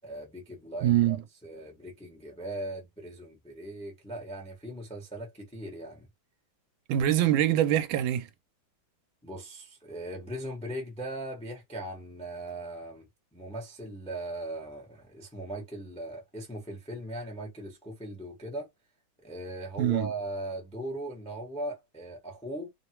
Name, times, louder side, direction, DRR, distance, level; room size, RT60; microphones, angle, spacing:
voice 1, 0.0-1.2 1.4-6.1 9.2-18.7 19.2-22.7, right 1 dB, 10° left, 0.4 m, -39 dB
voice 2, 0.8-1.2 6.9-8.3 19.8-20.1, right 12 dB, 85° right, 1.4 m, -24 dB
3.3 x 2.2 x 2.8 m
omnidirectional pair, 2.2 m